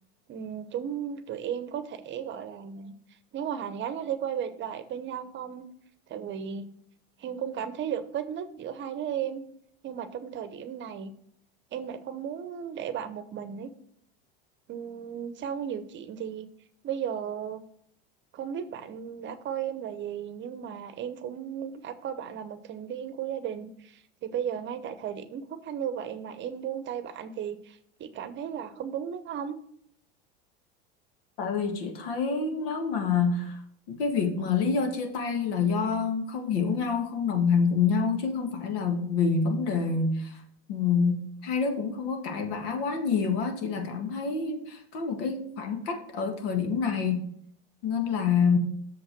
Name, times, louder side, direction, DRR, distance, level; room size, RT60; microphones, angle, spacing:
voice 1, 0.3-2.9 3.3-5.7 6.1-6.7 7.2-9.4 9.8-11.1 11.7-13.7 14.7-16.5 16.8-17.6 18.3-29.6, right 8 dB, 40° right, 12 dB, 0.9 m, -35 dB
voice 2, 31.4-33.6 33.9-40.4 40.7-47.3 47.8-48.6, left 5 dB, 75° left, 5 dB, 1.8 m, -27 dB
6.6 x 5.5 x 6.0 m, 0.68 s
supercardioid pair, 110°, 30 cm